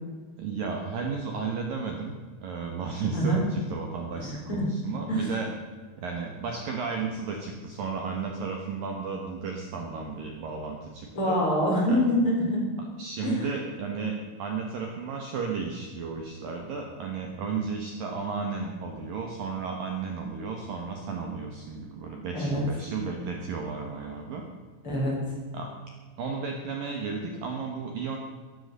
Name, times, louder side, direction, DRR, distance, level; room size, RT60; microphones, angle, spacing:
voice 1, 0.4-5.5 6.0-11.4 11.9-12.0 12.8-24.4 25.5-25.7 26.2-28.2, right 5 dB, 65° right, 2 dB, 2.5 m, -33 dB
voice 2, 4.2-4.6 5.1-5.3 11.2-12.6 13.2-13.4 22.3-22.6 24.8-25.2, equal, 30° left, -3 dB, 4.6 m, -25 dB
13.5 x 13.5 x 6.7 m, 1.5 s
omnidirectional pair, 5.4 m